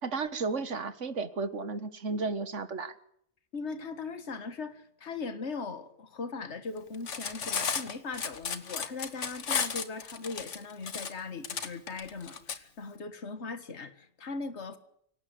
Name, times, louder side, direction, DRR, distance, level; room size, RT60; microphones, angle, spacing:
voice 1, 0.0-2.9, right 4 dB, 80° right, 13 dB, 1.8 m, -33 dB
voice 2, 3.5-14.8, left 4 dB, 65° left, 11 dB, 1.9 m, -39 dB
Cutlery silverware, 6.9-12.6, left 6 dB, 85° left, 1.7 m, -34 dB
24.5 x 18.0 x 8.1 m, 0.70 s
omnidirectional pair, 1.2 m